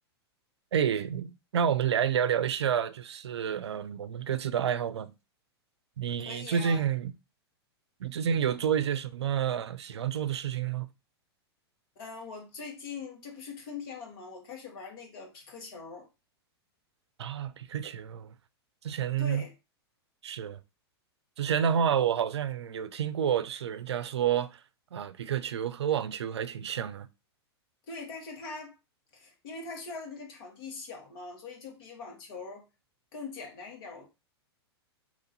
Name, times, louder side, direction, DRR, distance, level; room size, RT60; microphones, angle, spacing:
voice 1, 0.7-5.1 6.0-7.1 8.0-10.9 17.2-18.3 18.8-19.4 20.2-20.6 21.4-24.6 24.9-27.1, right 8 dB, 85° right, 0.4 m, -29 dB
voice 2, 6.2-6.8 11.9-16.1 19.2-19.5 27.9-28.7 29.1-32.6 33.1-34.1, left 4 dB, 60° left, 1.5 m, -42 dB
3.0 x 2.6 x 3.8 m
hypercardioid pair, 110°, 14 cm